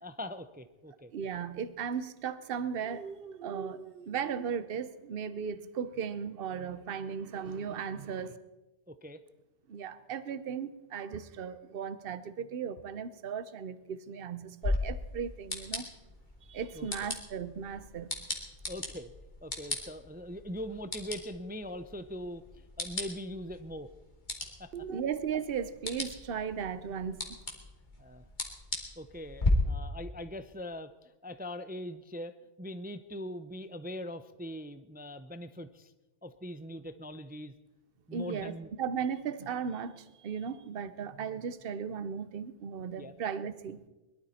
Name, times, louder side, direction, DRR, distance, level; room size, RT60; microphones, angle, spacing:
voice 1, 0.0-1.1 8.9-9.2 16.7-16.9 18.7-19.1 19.4-23.9 24.6-24.7 28.0-28.2 29.0-35.9 36.2-37.5 38.1-38.7 43.0-43.1, equal, 15° right, 0.3 m, -42 dB
voice 2, 1.1-8.4 9.7-15.9 16.5-18.2 24.7-27.4 38.1-43.8, right 7 dB, 55° right, 0.9 m, -36 dB
sound 1, 14.6-29.5, left 2 dB, 40° left, 2.3 m, -39 dB
21.5 x 12.5 x 4.3 m
omnidirectional pair, 1.2 m